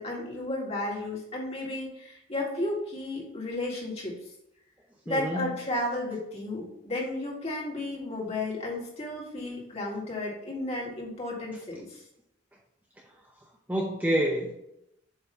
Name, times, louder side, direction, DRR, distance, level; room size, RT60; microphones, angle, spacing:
voice 1, 0.0-4.2 5.1-12.0, left 2 dB, 30° left, -3 dB, 1.9 m, -33 dB
voice 2, 5.1-5.5 13.7-14.5, equal, 10° right, -1 dB, 0.6 m, -27 dB
8.0 x 3.1 x 5.3 m, 0.81 s
head